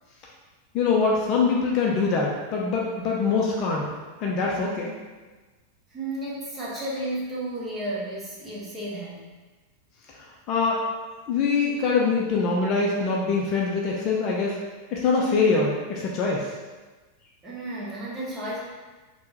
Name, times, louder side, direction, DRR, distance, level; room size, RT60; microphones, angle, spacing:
voice 1, 0.7-3.9 4.2-4.9 10.5-10.8 11.3-14.6 14.9-16.5, left 4 dB, 40° left, -2 dB, 0.4 m, -23 dB
voice 2, 5.9-9.3 17.4-18.6, right 1 dB, 15° right, -7 dB, 1.0 m, -33 dB
3.4 x 2.2 x 2.8 m, 1.3 s
figure-of-eight pair, 90°, 0 cm